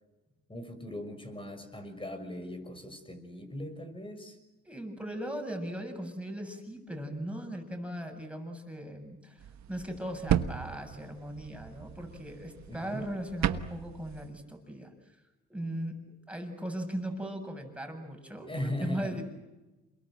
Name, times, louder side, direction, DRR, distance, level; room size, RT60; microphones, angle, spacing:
voice 1, 0.5-4.4 12.7-13.1 18.5-19.2, left 1 dB, 15° left, 7 dB, 6.0 m, -39 dB
voice 2, 4.6-9.4 9.7-14.9 15.5-16.0 16.3-19.2, equal, 5° right, 3 dB, 7.4 m, -38 dB
sound 1, 9.4-14.3, right 10 dB, 65° right, 1.3 m, -35 dB
28.5 x 23.0 x 7.8 m, 1.1 s
cardioid pair, 90°, 30 cm